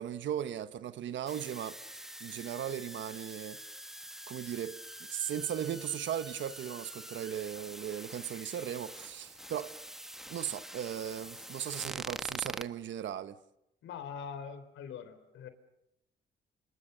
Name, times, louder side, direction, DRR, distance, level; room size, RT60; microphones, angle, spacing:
voice 1, 0.0-1.8 2.2-3.6 4.3-9.7 10.3-13.4, right 10 dB, 70° right, 1.1 m, -37 dB
sound 1, 1.3-12.7, equal, ahead, 1.2 m, -45 dB
voice 2, 13.8-15.5, left 7 dB, 75° left, 3.5 m, -43 dB
28.5 x 27.0 x 6.8 m
cardioid pair, 90°, 20 cm